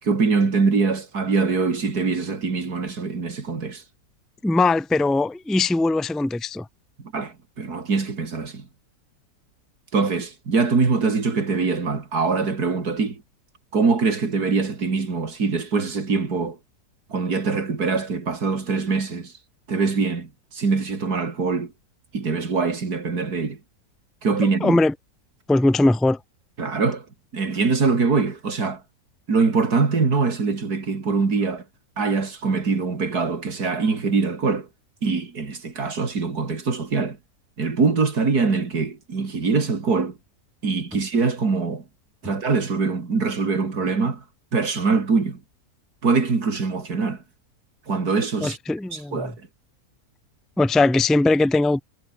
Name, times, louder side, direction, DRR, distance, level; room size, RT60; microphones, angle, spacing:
voice 1, 0.0-3.8 7.1-8.7 9.9-13.2 13.7-16.6 17.1-19.3 19.7-21.7 22.1-23.6 24.2-24.8 26.6-27.0 27.3-28.8 29.3-31.6 32.0-34.7 35.0-37.2 37.6-40.2 40.6-41.8 42.2-44.2 44.5-45.4 46.0-47.2 47.9-48.6 48.9-49.3, right 4 dB, 85° right, 3.4 m, -23 dB
voice 2, 4.4-6.7 24.6-24.9 25.5-26.2 48.4-49.3 50.6-51.8, left 2 dB, ahead, 0.3 m, -20 dB
omnidirectional pair, 1.6 m